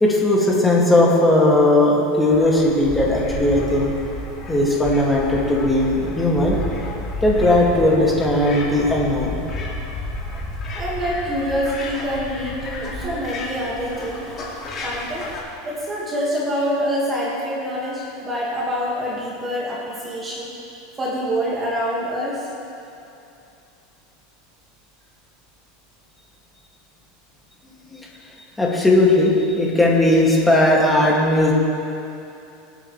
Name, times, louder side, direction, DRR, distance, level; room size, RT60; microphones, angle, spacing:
voice 1, 0.0-3.9 4.5-6.6 7.2-9.4 27.9-28.0 28.6-31.5, left 1 dB, 10° left, -4 dB, 2.3 m, -17 dB
sound 1, 2.3-15.4, left 1 dB, 30° left, 2.6 m, -31 dB
voice 2, 10.7-14.3 14.8-15.3 15.6-20.5 21.0-22.5, equal, 20° right, -5 dB, 2.0 m, -26 dB
25.0 x 9.1 x 3.3 m, 2.8 s
supercardioid pair, 145°, 0 cm